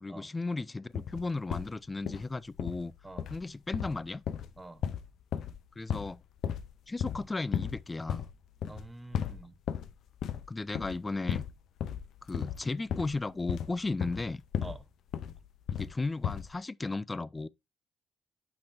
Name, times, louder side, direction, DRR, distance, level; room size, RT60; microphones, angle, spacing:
voice 1, 0.0-2.9 3.3-4.2 5.8-6.2 6.9-8.2 10.5-11.4 12.2-14.4 15.7-17.5, left 3 dB, 20° left, 0.4 m, -35 dB
sound 1, 0.9-1.7 2.0-2.3 2.6-2.9 3.2-3.4 3.7-5.6 5.9-6.1 6.4-6.7 7.0-7.2 7.5-7.8 8.1-8.3 8.6-8.9 9.1-9.9 10.2-10.5 10.7-11.0 11.3-11.5 11.8-14.8 15.1-15.9 16.2-16.5, left 9 dB, 75° left, 0.6 m, -34 dB
voice 2, 8.7-9.5 14.6-14.8, right 2 dB, 15° right, 1.0 m, -46 dB
8.5 x 6.1 x 2.7 m
cardioid pair, 90°, 0 cm